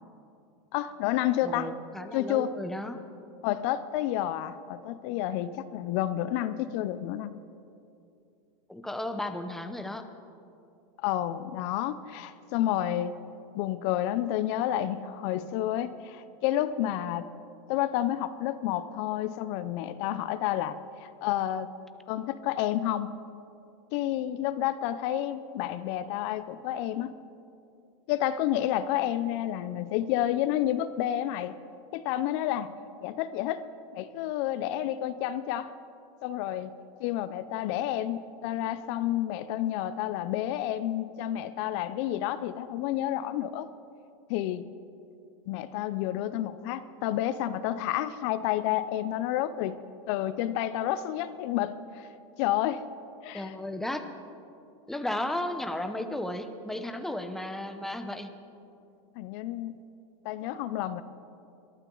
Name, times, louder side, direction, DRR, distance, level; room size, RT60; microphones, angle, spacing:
voice 1, 0.7-1.7 2.1-2.5 3.4-7.4 11.0-13.2 13.5-17.3 17.7-21.7 22.1-23.2 23.9-27.1 28.1-31.6 31.9-32.7 33.0-33.6 33.9-35.7 36.2-36.7 37.0-43.7 44.3-44.7 45.5-49.8 50.1-52.1 52.4-52.8 53.2-53.5 59.2-59.8 60.2-61.0, left 12 dB, 55° left, 13 dB, 0.6 m, -30 dB
voice 2, 1.4-3.0 8.7-10.1 53.3-54.1 54.9-58.3, left 1 dB, ahead, 7 dB, 0.8 m, -34 dB
22.5 x 12.5 x 3.9 m, 2.6 s
supercardioid pair, 130°, 17 cm